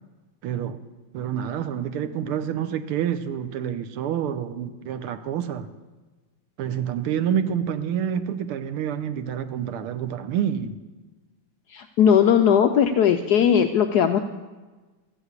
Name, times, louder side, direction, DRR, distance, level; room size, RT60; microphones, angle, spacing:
voice 1, 0.4-0.8 1.1-5.7 6.6-10.8, right 9 dB, 85° right, 9 dB, 1.7 m, -28 dB
voice 2, 11.7-14.2, left 8 dB, 85° left, 7 dB, 0.8 m, -18 dB
14.0 x 8.0 x 8.2 m, 1.3 s
omnidirectional pair, 2.4 m